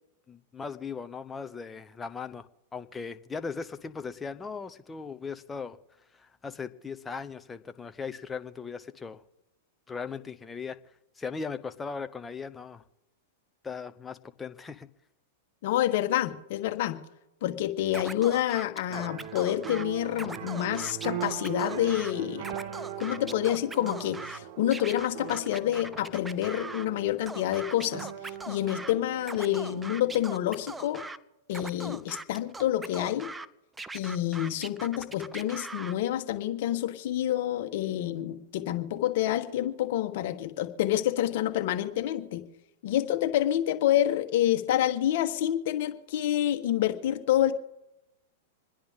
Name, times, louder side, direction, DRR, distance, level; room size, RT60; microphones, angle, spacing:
voice 1, 0.3-2.5 2.7-5.8 6.1-9.2 9.9-10.8 11.2-12.8 13.6-14.9, left 5 dB, 15° left, 10 dB, 0.8 m, -38 dB
voice 2, 15.6-17.0 17.4-22.5 23.0-28.1 28.5-31.0 31.5-33.3 33.9-42.4 42.8-47.5, left 12 dB, 60° left, 7 dB, 1.5 m, -28 dB
Scratching (performance technique), 17.9-19.8 20.1-22.1 22.4-24.4 24.7-26.9 27.3-28.9 29.2-31.2 31.5-33.5 33.8-35.9, right 3 dB, 10° right, 0.5 m, -41 dB
sound 1, 18.9-30.1, right 11 dB, 55° right, 1.2 m, -40 dB
27.0 x 10.5 x 3.7 m, 0.92 s
hypercardioid pair, 120°, 0 cm